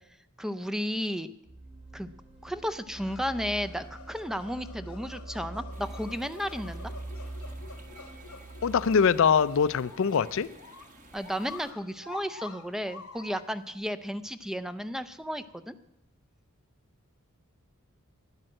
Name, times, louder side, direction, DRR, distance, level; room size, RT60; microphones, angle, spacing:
voice 1, 0.4-1.3 1.9-2.1 2.4-6.9 11.1-15.7, equal, ahead, 12 dB, 0.4 m, -33 dB
sound 1, 1.4-11.2, right 2 dB, 55° right, 4.7 m, -44 dB
sound 2, 2.9-13.7, left 4 dB, 85° left, 1.1 m, -48 dB
sound 3, 5.7-11.7, right 2 dB, 35° right, 1.6 m, -54 dB
voice 2, 8.6-10.5, left 6 dB, 65° left, 16 dB, 0.4 m, -23 dB
12.0 x 10.0 x 7.6 m, 0.87 s
head